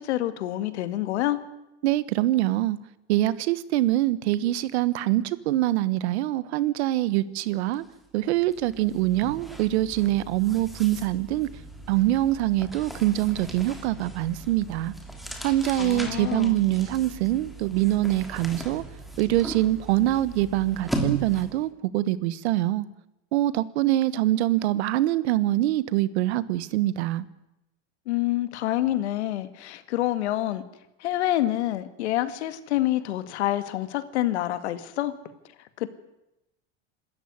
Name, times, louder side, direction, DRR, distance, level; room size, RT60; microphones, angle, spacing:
voice 1, 0.0-1.4 15.8-16.6 28.1-30.6 31.0-35.1 35.8-35.9, left 14 dB, 85° left, 12 dB, 2.2 m, -27 dB
voice 2, 1.8-2.8 3.1-7.8 8.1-11.5 11.9-14.9 15.4-18.8 19.2-22.8 23.3-27.2, right 15 dB, 75° right, 17 dB, 1.4 m, -24 dB
sound 1, 7.7-7.9 8.2-21.7, right 2 dB, ahead, 3.0 m, -37 dB
26.0 x 13.5 x 9.6 m, 0.92 s
supercardioid pair, 140°, 33 cm